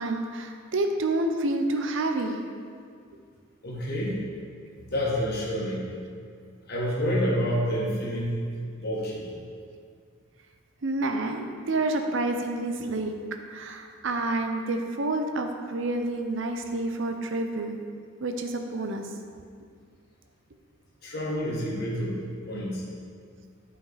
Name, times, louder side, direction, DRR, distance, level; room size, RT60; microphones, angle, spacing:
voice 1, 0.0-2.4 10.8-13.1 13.5-17.8 18.2-19.1, right 2 dB, 65° right, 5 dB, 0.6 m, -28 dB
voice 2, 3.6-4.2 4.9-5.9 6.7-8.4 8.8-9.3 21.0-22.8, equal, 50° left, -5 dB, 1.5 m, -28 dB
8.6 x 5.1 x 4.1 m, 2.1 s
head